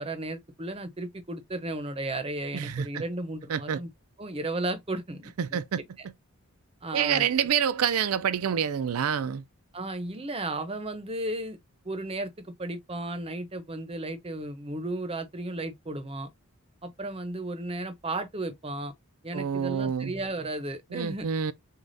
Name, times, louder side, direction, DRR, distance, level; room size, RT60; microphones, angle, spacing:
voice 1, 0.0-3.9 4.2-5.6 6.0-6.1 6.8-7.2 9.7-11.6 11.8-16.3 16.8-18.9 19.2-21.3, right 2 dB, 25° right, 0.7 m, -34 dB
voice 2, 2.5-3.0 3.5-3.8 5.4-5.8 6.9-9.4 19.3-20.1 20.9-21.5, right 8 dB, 80° right, 0.4 m, -27 dB
6.4 x 2.3 x 2.6 m
head